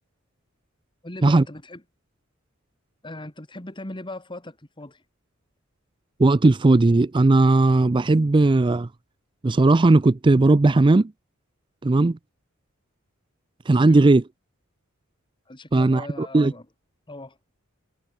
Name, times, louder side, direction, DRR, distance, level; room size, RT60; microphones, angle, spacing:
voice 1, 1.0-1.8 3.0-5.0 13.8-14.1 15.5-16.7 17.1-17.4, left 1 dB, 25° left, 2.0 m, -39 dB
voice 2, 6.2-8.9 9.4-11.1 11.8-12.2 13.7-14.2 15.7-16.5, right 2 dB, 25° right, 0.4 m, -17 dB
head